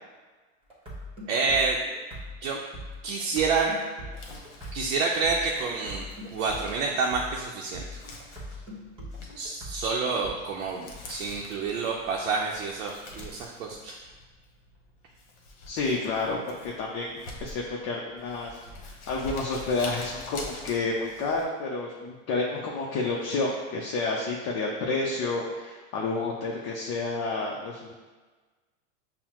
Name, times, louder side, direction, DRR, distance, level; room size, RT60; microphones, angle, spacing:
sound 1, 0.7-10.3, left 1 dB, 15° right, 1.2 m, -41 dB
voice 1, 1.3-1.8 2.4-2.6 3.0-3.8 4.7-6.1 6.3-8.0 9.4-14.0, right 4 dB, 80° right, -1 dB, 0.6 m, -28 dB
Crumpling crinkling, 4.0-21.4, left 2 dB, 55° left, 1.0 m, -46 dB
voice 2, 15.7-27.9, left 3 dB, 40° left, -3 dB, 0.5 m, -30 dB
5.5 x 2.1 x 2.9 m, 1.3 s
hypercardioid pair, 110°, 40 cm